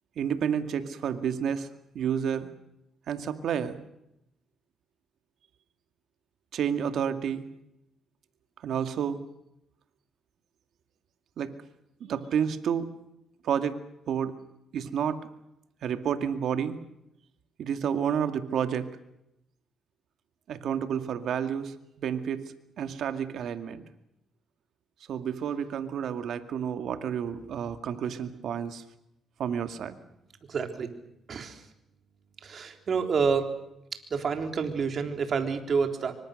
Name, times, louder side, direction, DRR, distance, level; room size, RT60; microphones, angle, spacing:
voice 1, 0.2-1.7 1.9-2.5 3.1-3.8 6.5-7.4 8.6-9.2 11.4-11.5 12.0-12.9 13.4-13.8 14.1-14.3 14.7-15.3 15.8-16.8 17.6-18.9 20.5-22.4 22.8-23.8 25.1-28.8 29.4-30.0, right 8 dB, 70° right, 8 dB, 2.1 m, -30 dB
voice 2, 30.5-30.9 31.3-31.6 32.4-33.5 34.1-36.1, right 5 dB, 50° right, 5 dB, 3.6 m, -28 dB
26.0 x 24.0 x 6.6 m, 0.84 s
cardioid pair, 90°, 0 cm